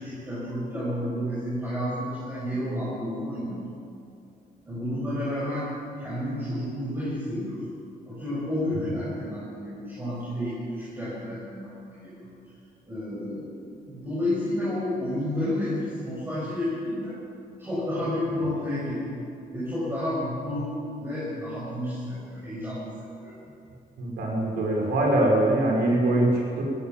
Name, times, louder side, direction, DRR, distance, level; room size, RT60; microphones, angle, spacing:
voice 1, 0.0-3.6 4.7-5.7 6.0-7.6 8.1-12.3 12.9-13.5 13.9-17.2 17.6-19.1 19.5-20.7 21.0-23.3, left 1 dB, 15° right, -9 dB, 6.9 m, -31 dB
voice 2, 24.0-26.6, right 1 dB, 90° right, -1 dB, 6.2 m, -23 dB
20.0 x 17.0 x 7.8 m, 2.6 s
cardioid pair, 145°, 16 cm